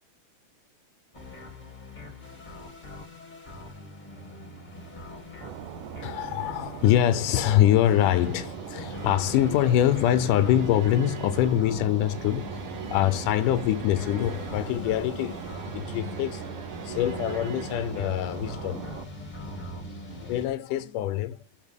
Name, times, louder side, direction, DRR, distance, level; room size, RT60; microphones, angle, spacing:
sound 1, 1.1-20.5, left 1 dB, 20° left, 1.3 m, -40 dB
sound 2, 5.4-19.1, right 11 dB, 90° right, 2.3 m, -41 dB
voice 1, 6.0-15.4 15.7-18.8 20.2-21.4, left 12 dB, 85° left, 2.2 m, -24 dB
sound 3, 7.9-17.9, right 7 dB, 70° right, 3.0 m, -44 dB
8.3 x 6.7 x 5.2 m
omnidirectional pair, 3.7 m